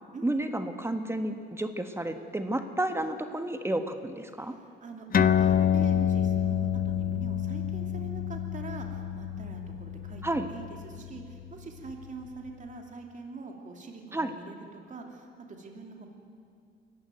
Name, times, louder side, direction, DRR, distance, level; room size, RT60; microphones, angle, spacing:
voice 1, 0.2-4.5 10.2-10.5 14.1-14.3, right 1 dB, 15° right, 7 dB, 1.3 m, -31 dB
voice 2, 4.4-16.1, right 3 dB, 40° right, 2 dB, 2.9 m, -44 dB
sound 1, 5.1-12.1, left 9 dB, 45° left, 0.8 m, -28 dB
23.5 x 15.0 x 9.3 m, 2.3 s
cardioid pair, 90°, 20 cm